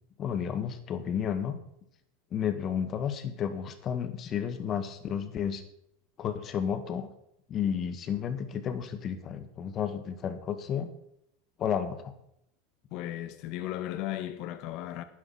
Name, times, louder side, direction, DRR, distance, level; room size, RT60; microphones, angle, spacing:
voice 1, 0.2-1.6 2.3-5.6 6.2-7.1 7.5-10.9 11.6-12.1, left 8 dB, 40° left, 1.8 m, -32 dB
voice 2, 12.9-15.0, left 13 dB, 55° left, 1.5 m, -35 dB
11.5 x 9.8 x 5.8 m
hypercardioid pair, 100°, 0 cm